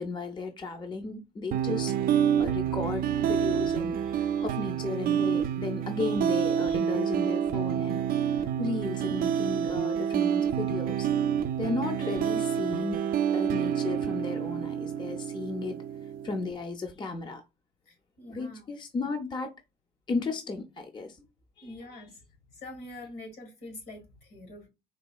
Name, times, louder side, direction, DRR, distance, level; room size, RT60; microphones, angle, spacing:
voice 1, 0.0-1.9 2.4-8.0 8.6-11.1 11.6-13.0 13.3-15.8 16.2-17.4 18.3-19.5 20.1-21.2 21.6-21.7, left 3 dB, 25° left, 0.5 m, -34 dB
sound 1, 1.5-16.5, right 9 dB, 60° right, 0.4 m, -28 dB
voice 2, 17.9-18.6 21.2-21.3 21.6-22.2 22.5-24.7, left 1 dB, 70° left, 1.7 m, -45 dB
3.9 x 2.7 x 2.3 m
cardioid pair, 110°, 17 cm